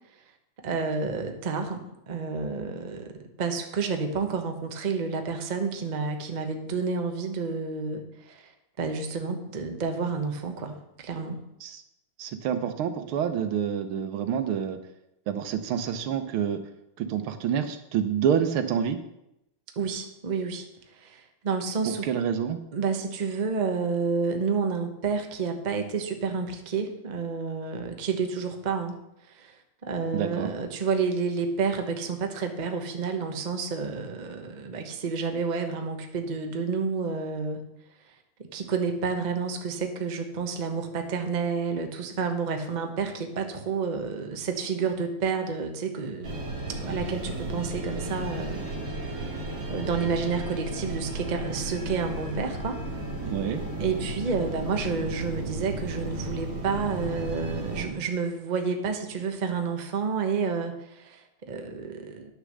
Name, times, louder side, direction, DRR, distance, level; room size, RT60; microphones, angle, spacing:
voice 1, 0.6-3.1 3.4-8.5 8.8-10.7 11.0-11.4 19.8-20.6 21.0-22.1 22.7-29.0 29.3-29.6 29.8-37.6 38.4-48.6 49.7-52.8 53.8-62.3, right 5 dB, 35° right, 4 dB, 0.7 m, -30 dB
voice 2, 12.2-14.8 15.3-16.6 17.0-19.0 21.9-22.6 30.1-30.5 53.2-53.6, right 8 dB, 80° right, 9 dB, 1.7 m, -27 dB
sound 1, 46.2-57.9, right 2 dB, 55° right, 2.7 m, -34 dB
9.6 x 6.7 x 6.4 m, 0.85 s
omnidirectional pair, 2.3 m